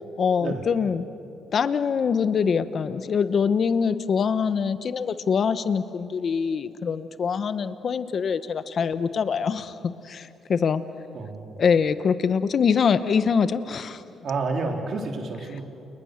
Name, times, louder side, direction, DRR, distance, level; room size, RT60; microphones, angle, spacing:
voice 1, 0.2-1.0 1.5-10.8 11.6-14.0, left 6 dB, 50° left, 12 dB, 1.2 m, -24 dB
voice 2, 11.1-11.6 14.2-15.6, right 3 dB, 60° right, 2 dB, 3.7 m, -30 dB
29.5 x 29.5 x 6.7 m, 2.7 s
cardioid pair, 90°, 0 cm